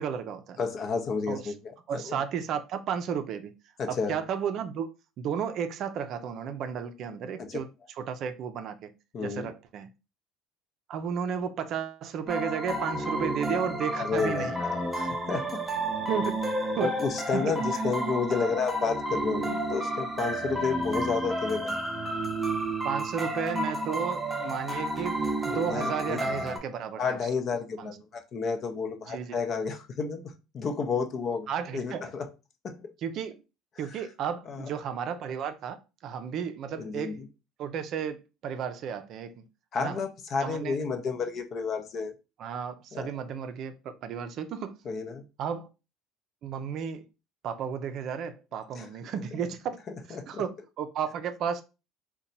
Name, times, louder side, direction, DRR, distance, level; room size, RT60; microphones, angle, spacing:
voice 1, 0.0-0.6 1.3-1.5 1.9-3.5 3.9-4.9 5.2-7.7 8.0-8.9 9.2-9.9 10.9-14.5 16.1-16.9 17.3-17.6 22.8-25.2 25.5-27.2 27.8-28.0 29.1-29.4 31.5-32.1 33.0-33.4 33.8-35.8 36.0-37.2 37.6-38.2 38.4-39.4 39.8-40.0 40.4-40.8 42.4-44.7 45.4-45.7 46.4-47.0 47.4-49.8 50.1-51.6, right 7 dB, 55° right, 0.4 m, -33 dB
voice 2, 0.6-2.2 3.8-4.2 7.4-7.6 9.1-9.5 14.0-15.6 16.8-21.8 25.7-26.3 27.0-31.5 31.7-32.3 32.6-32.9 33.9-34.0 34.5-34.7 36.8-37.3 39.7-42.1 42.9-43.2 44.8-45.2 48.7-48.9 49.3-49.4 50.1-50.4, left 5 dB, 45° left, 0.6 m, -31 dB
sound 1, 12.3-26.6, right 1 dB, 5° right, 0.7 m, -31 dB
2.8 x 2.2 x 3.9 m
supercardioid pair, 105°, 0 cm